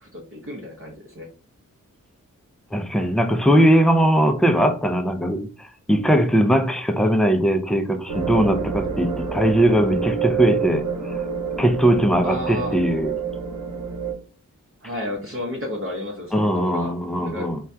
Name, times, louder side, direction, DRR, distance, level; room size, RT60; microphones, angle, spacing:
voice 1, 0.0-1.3 12.2-12.8 14.8-17.5, left 1 dB, 45° right, 0.7 m, -32 dB
voice 2, 2.7-11.1 11.6-13.1 16.3-17.6, right 1 dB, ahead, 0.3 m, -20 dB
sound 1, 8.1-14.1, right 6 dB, 80° right, 0.9 m, -28 dB
3.3 x 2.2 x 2.6 m
wide cardioid pair, 80°, 31 cm